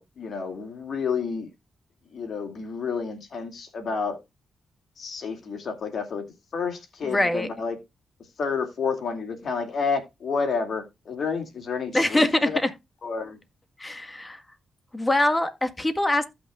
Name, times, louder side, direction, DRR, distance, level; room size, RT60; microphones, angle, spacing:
voice 1, 0.0-1.5 2.1-4.2 5.0-6.2 6.5-7.8 8.4-12.6 13.0-13.4, left 5 dB, 60° left, 2.4 m, -30 dB
voice 2, 7.1-7.5 11.9-12.7 13.8-14.4 14.9-16.3, left 1 dB, 20° left, 1.7 m, -23 dB
15.0 x 6.1 x 2.4 m
cardioid pair, 60°, 0 cm